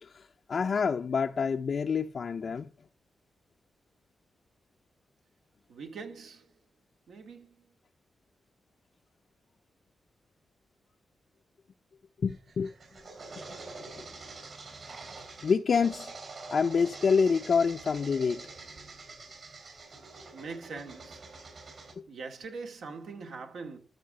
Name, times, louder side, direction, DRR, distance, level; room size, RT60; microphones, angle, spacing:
voice 1, 0.0-2.7 12.2-12.7 13.4-13.5 13.9-14.0 15.4-16.1 16.5-18.5 22.0-22.1, left 5 dB, 55° left, 0.5 m, -27 dB
voice 2, 5.7-6.5 7.1-7.7 20.3-21.4 22.1-23.8, right 4 dB, 80° right, 2.3 m, -42 dB
sound 1, 12.3-21.9, right 3 dB, 55° right, 4.6 m, -46 dB
13.0 x 5.6 x 6.6 m
cardioid pair, 90°, 0 cm